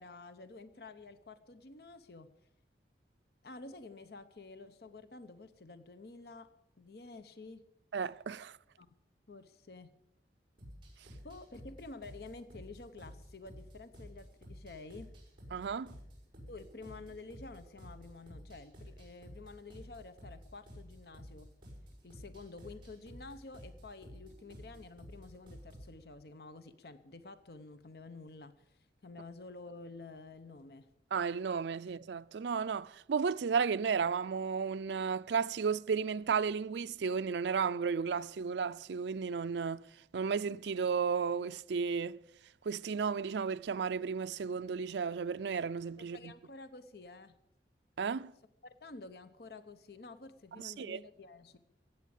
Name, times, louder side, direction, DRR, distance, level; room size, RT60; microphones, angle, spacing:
voice 1, 0.0-2.3 3.4-6.5 6.8-7.6 8.8-8.9 9.3-9.9 11.2-15.1 16.5-21.5 22.0-30.9 46.0-47.4 48.6-51.6, left 3 dB, 60° left, 0.8 m, -50 dB
voice 2, 7.9-8.6 15.5-16.0 31.1-39.8 40.1-42.2 42.6-46.3 48.0-48.3 50.6-51.0, right 6 dB, 80° right, 0.4 m, -33 dB
sound 1, 10.6-25.9, equal, 30° right, 5.6 m, -52 dB
15.5 x 8.3 x 8.6 m
head